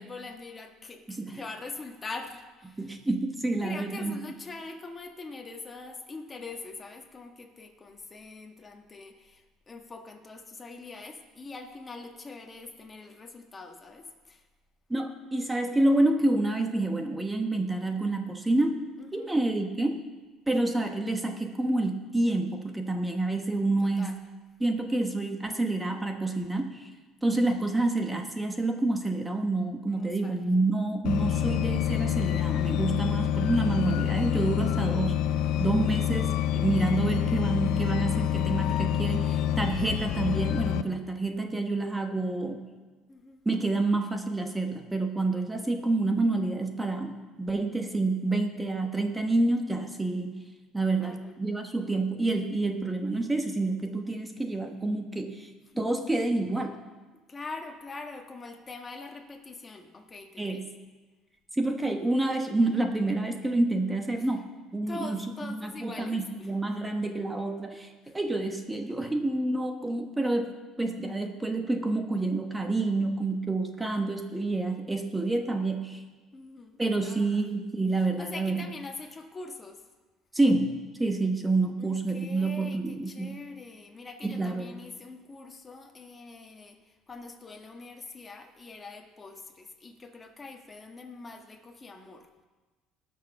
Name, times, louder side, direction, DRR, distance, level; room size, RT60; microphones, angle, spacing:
voice 1, 0.0-2.9 3.6-9.4 9.7-14.4 19.0-19.4 23.8-24.1 29.9-30.4 43.1-43.4 51.0-51.3 57.3-60.7 64.2-64.3 64.9-66.5 76.3-77.4 78.2-79.8 81.8-86.8 87.1-92.3, left 3 dB, 25° left, 3 dB, 1.6 m, -43 dB
voice 2, 1.1-1.4 2.8-4.2 14.9-18.8 19.1-20.0 20.5-24.2 24.6-26.9 27.2-35.1 35.6-42.6 43.4-50.3 50.7-55.5 55.8-56.7 60.4-60.6 61.5-64.5 64.7-76.0 76.8-78.7 80.3-83.4 84.2-84.7, right 2 dB, 10° right, 5 dB, 1.1 m, -28 dB
sound 1, 31.0-40.8, left 11 dB, 70° left, 0.6 m, -27 dB
19.0 x 6.5 x 5.9 m, 1.3 s
cardioid pair, 110°, 0 cm